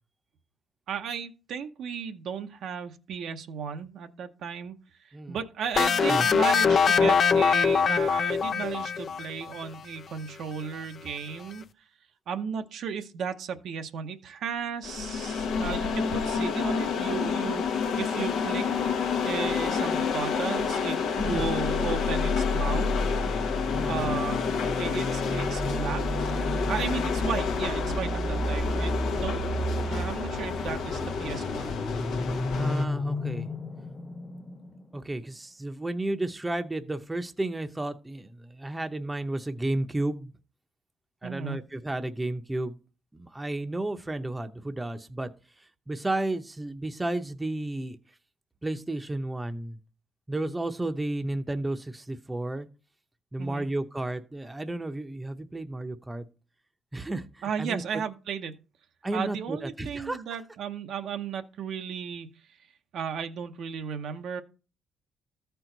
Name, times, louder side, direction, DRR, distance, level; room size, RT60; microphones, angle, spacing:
voice 1, 0.9-4.7 5.0-11.7 12.3-18.7 19.2-21.0 21.2-22.9 23.4-23.5 23.9-24.4 24.8-29.4 29.8-31.8 41.2-41.6 53.4-53.7 57.4-58.5 59.1-62.3 62.9-64.4, right 7 dB, 75° right, 0.8 m, -35 dB
sound 1, 5.8-9.5, left 6 dB, 50° left, 0.5 m, -22 dB
sound 2, 14.8-32.8, left 6 dB, 80° left, 0.9 m, -29 dB
sound 3, 21.2-34.9, left 1 dB, 15° left, 0.8 m, -32 dB
voice 2, 32.5-33.5 34.9-40.3 41.2-42.8 43.1-45.3 45.9-48.0 48.6-49.8 50.3-52.7 53.3-56.2 56.9-57.8 59.0-60.2, right 2 dB, 15° right, 0.7 m, -32 dB
13.5 x 4.6 x 3.9 m
cardioid pair, 90°, 0 cm